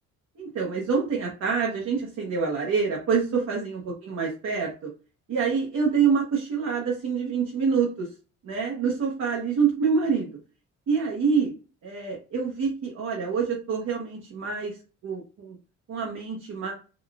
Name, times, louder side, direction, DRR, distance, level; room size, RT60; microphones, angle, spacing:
voice 1, 0.4-4.9 5.3-8.1 8.4-10.3 10.9-11.5 11.8-14.8 15.0-15.5 15.9-16.7, right 5 dB, 60° right, -2 dB, 0.9 m, -26 dB
3.8 x 2.3 x 2.3 m, 0.35 s
cardioid pair, 90°, 30 cm